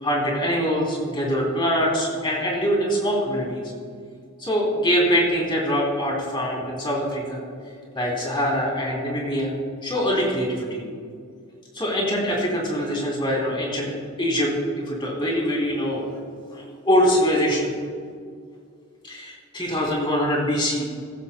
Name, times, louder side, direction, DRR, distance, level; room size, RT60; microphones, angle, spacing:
voice 1, 0.0-3.7 4.4-7.4 7.9-9.5 9.8-10.8 11.7-14.5 14.9-16.0 16.5-17.7 19.0-20.9, equal, 20° left, -2 dB, 3.0 m, -23 dB
16.5 x 14.5 x 2.2 m, 2.2 s
head